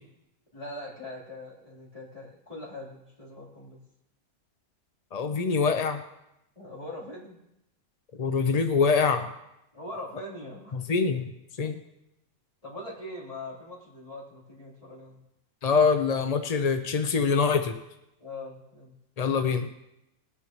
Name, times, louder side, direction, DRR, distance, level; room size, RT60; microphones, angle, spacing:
voice 1, 0.5-3.8 6.6-7.4 9.7-10.8 11.6-11.7 12.6-15.2 18.2-19.0, left 1 dB, 25° left, -6 dB, 3.7 m, -42 dB
voice 2, 5.1-6.0 8.2-9.3 10.7-11.2 11.6-11.8 15.6-17.7 19.2-19.7, left 5 dB, 50° left, 7 dB, 0.4 m, -24 dB
19.5 x 9.0 x 3.1 m, 0.87 s
omnidirectional pair, 1.5 m